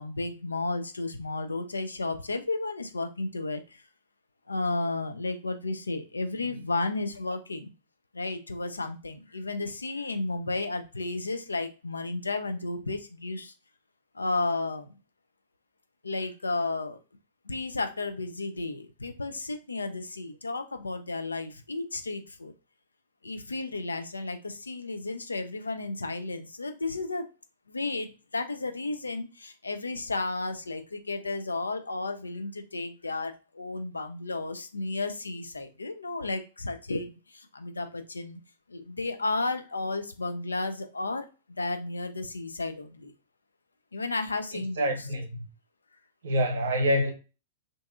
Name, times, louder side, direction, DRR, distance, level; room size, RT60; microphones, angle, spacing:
voice 1, 0.0-3.8 4.5-7.7 8.1-13.5 14.1-15.0 16.0-17.0 17.4-22.5 23.2-27.3 27.7-38.4 38.7-41.3 41.6-43.1 43.9-44.9, left 3 dB, 80° left, 0.5 m, -33 dB
voice 2, 44.5-45.4 46.2-47.1, equal, 65° right, 0.9 m, -27 dB
2.6 x 2.5 x 2.3 m
figure-of-eight pair, 105°, 0 cm